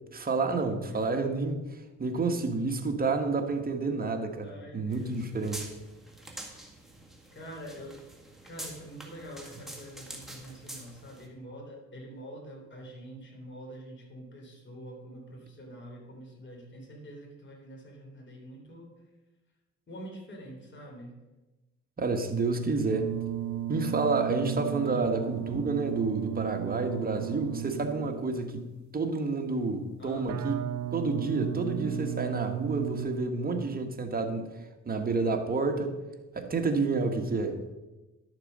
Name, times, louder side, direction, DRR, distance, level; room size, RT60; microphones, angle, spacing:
voice 1, 0.1-1.6 2.0-5.6 22.0-23.2 23.7-30.6 30.9-34.5 34.8-36.0 36.3-37.6, right 3 dB, 30° right, 4 dB, 1.4 m, -29 dB
voice 2, 0.9-1.2 4.4-5.5 7.3-8.0 8.4-18.9 19.9-21.1 24.8-25.2 30.0-30.4, equal, 40° left, -1 dB, 3.5 m, -45 dB
Stereo Rain + Thunder + Hail Storm (Indoor Recording), 4.9-11.3, right 1 dB, ahead, 1.8 m, -46 dB
sound 1, 22.9-28.5 30.3-33.1, right 13 dB, 70° right, 0.5 m, -35 dB
11.5 x 6.7 x 5.4 m, 1.1 s
cardioid pair, 90°, 30 cm